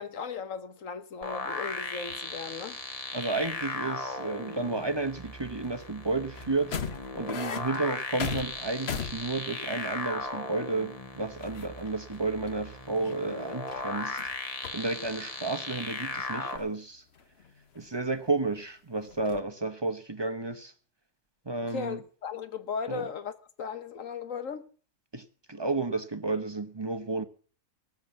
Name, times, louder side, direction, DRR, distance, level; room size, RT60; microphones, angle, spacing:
voice 1, 0.0-2.8 21.6-23.3 23.6-24.6, left 6 dB, 70° left, 1.5 m, -37 dB
sound 1, 1.2-16.6, left 2 dB, 25° left, 1.7 m, -37 dB
sound 2, 1.8-2.6 3.0-4.1 4.4-5.9 6.3-10.3 10.8-10.9 11.1-12.2 12.5-14.4 14.6-15.5 15.8-16.7 17.1-18.6 19.0-19.4, left 7 dB, 50° left, 1.2 m, -41 dB
voice 2, 3.1-6.7 7.1-14.2 14.7-17.0 17.7-20.7 21.5-22.0 22.9-23.1 25.1-27.2, right 3 dB, 20° right, 0.8 m, -32 dB
18.5 x 7.3 x 7.4 m
omnidirectional pair, 1.4 m